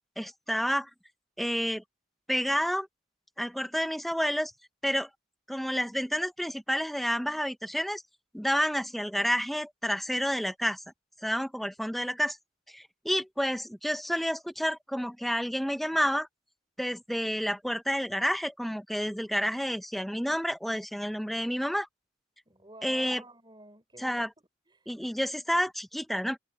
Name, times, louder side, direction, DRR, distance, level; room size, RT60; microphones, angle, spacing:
voice 1, 0.2-0.9 1.4-1.8 2.3-2.9 3.4-4.5 4.8-5.1 5.5-8.0 8.3-10.8 11.2-12.4 12.7-16.3 16.8-21.9 22.8-23.2 24.0-24.3 24.9-26.4, equal, ahead, 1.1 m, -30 dB
voice 2, 22.4-24.3 24.7-24.9, right 2 dB, 25° right, 7.0 m, -51 dB
head